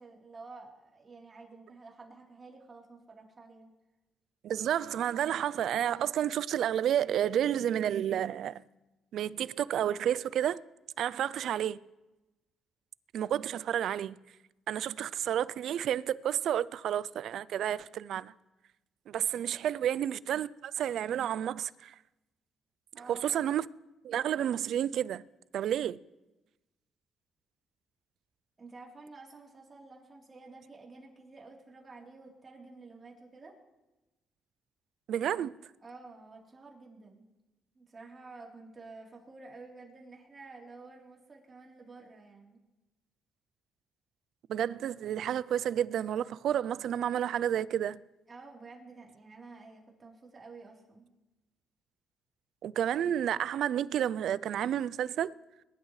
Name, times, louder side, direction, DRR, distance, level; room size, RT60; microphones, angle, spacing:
voice 1, 0.0-3.7 11.1-11.4 19.7-20.0 22.9-23.5 28.6-33.6 35.8-37.2 37.8-42.6 48.3-51.1, right 3 dB, 30° right, 3.4 m, -51 dB
voice 2, 4.4-8.6 9.1-10.6 11.0-11.8 13.1-14.2 14.7-18.3 19.1-21.9 23.1-23.7 24.0-25.2 25.5-26.0 35.1-35.6 44.5-48.0 52.6-55.3, right 10 dB, 70° right, 0.4 m, -30 dB
22.0 x 11.5 x 3.2 m
cardioid pair, 90°, 0 cm